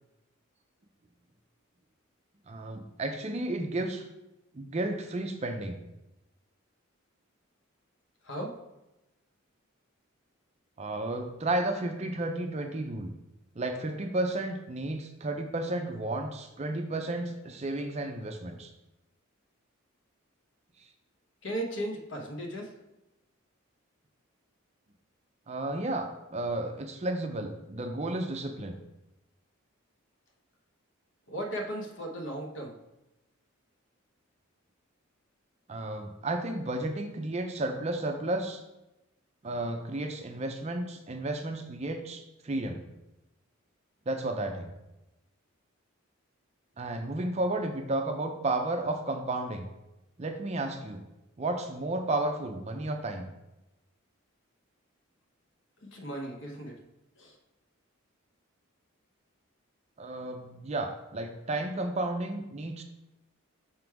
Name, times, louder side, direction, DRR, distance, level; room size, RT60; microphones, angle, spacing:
voice 1, 2.5-4.0 4.5-5.8 10.8-13.1 13.6-18.7 25.5-28.8 35.7-38.6 39.4-42.8 44.1-44.7 46.8-49.7 50.2-51.0 51.4-53.3 60.0-62.8, right 2 dB, 30° right, 5 dB, 0.5 m, -32 dB
voice 2, 21.4-22.7 31.3-32.7 55.9-56.7 57.2-57.4, right 1 dB, 60° left, 1 dB, 1.0 m, -36 dB
6.0 x 3.7 x 4.6 m, 0.95 s
head